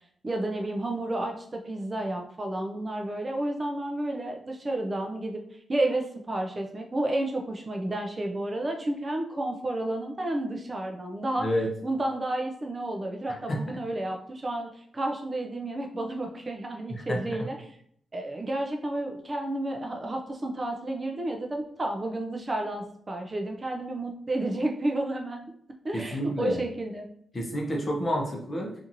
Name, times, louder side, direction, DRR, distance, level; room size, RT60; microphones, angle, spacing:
voice 1, 0.2-11.5 11.8-17.8 18.1-25.4 25.8-27.1, right 1 dB, 25° right, 2 dB, 0.3 m, -31 dB
voice 2, 25.9-26.6 27.3-28.7, equal, 30° left, -1 dB, 0.7 m, -29 dB
2.8 x 2.5 x 2.5 m, 0.65 s
wide cardioid pair, 120°, 0 cm